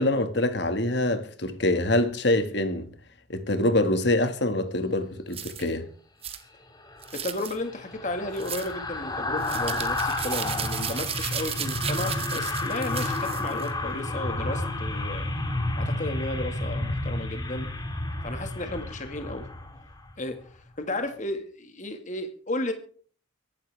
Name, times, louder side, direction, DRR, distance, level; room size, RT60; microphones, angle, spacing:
voice 1, 0.0-2.9 3.3-5.9, left 1 dB, 60° left, 2.0 m, -25 dB
sound 1, 5.3-5.7 6.2-6.4 7.0-7.6 8.4-8.7 9.4-13.7, right 8 dB, 30° right, 1.5 m, -34 dB
sound 2, 6.8-20.2 20.5-20.7, left 2 dB, 20° left, 2.4 m, -31 dB
voice 2, 7.1-15.3 15.8-17.7 18.2-19.5 20.2-22.7, left 2 dB, 40° left, 2.0 m, -33 dB
24.0 x 12.0 x 3.5 m
head